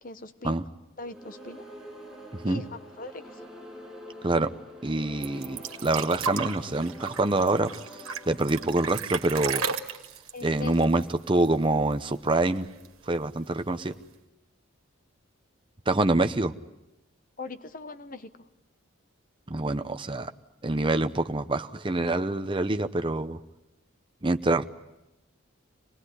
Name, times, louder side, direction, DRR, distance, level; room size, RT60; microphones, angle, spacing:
voice 1, 0.0-0.6 1.0-1.6 2.4-3.4 10.3-10.8 13.7-14.0 17.4-18.3, left 3 dB, 40° left, 10 dB, 1.1 m, -41 dB
sound 1, 1.0-9.9, equal, 5° right, 7.2 m, -46 dB
voice 2, 4.8-9.7 10.4-12.7 13.1-13.9 15.9-16.5 19.5-20.3 20.6-23.4 24.2-24.6, right 2 dB, 25° right, 8 dB, 0.8 m, -26 dB
sound 2, 5.2-11.6 11.9-12.0 12.3-13.0 13.9-14.0, right 6 dB, 85° right, 1.8 m, -34 dB
26.0 x 19.0 x 9.9 m, 0.96 s
head